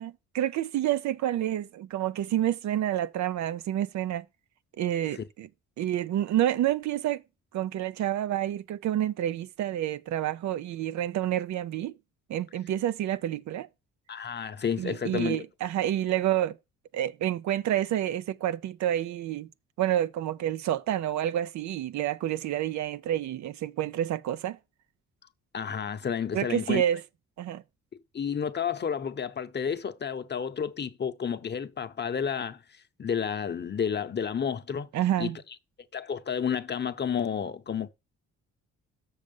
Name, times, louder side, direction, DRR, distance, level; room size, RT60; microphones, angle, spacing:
voice 1, 0.0-4.2 4.8-5.5 5.8-7.2 7.5-11.9 12.3-13.7 14.8-16.6 16.9-19.5 19.8-24.6 26.3-27.0 27.4-27.6 34.9-35.4, right 12 dB, 65° right, 0.5 m, -28 dB
voice 2, 14.1-15.4 25.5-26.8 28.1-32.6 33.0-34.9 35.2-35.3 35.9-37.9, left 7 dB, 35° left, 0.8 m, -31 dB
6.4 x 6.4 x 5.3 m
cardioid pair, 90°, 30 cm